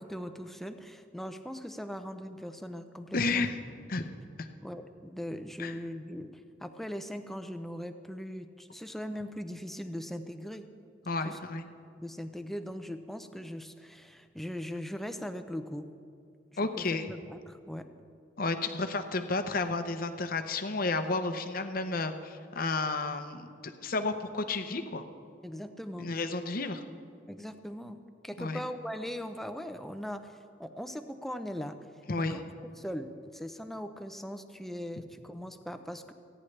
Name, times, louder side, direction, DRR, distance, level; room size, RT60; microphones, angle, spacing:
voice 1, 0.0-3.4 4.6-10.7 11.2-11.4 12.0-15.9 16.8-17.9 25.4-26.1 26.9-27.0 27.3-28.0 28.2-31.8 32.1-32.4 32.8-36.1, equal, ahead, 8 dB, 0.6 m, -40 dB
voice 2, 3.1-3.6 3.9-4.1 4.4-4.5 5.6-5.7 11.1-11.7 16.6-17.1 18.4-25.0 26.0-26.8 28.4-28.6 32.1-32.4, left 3 dB, 50° left, 8 dB, 0.8 m, -32 dB
29.5 x 10.0 x 3.3 m, 2.5 s
head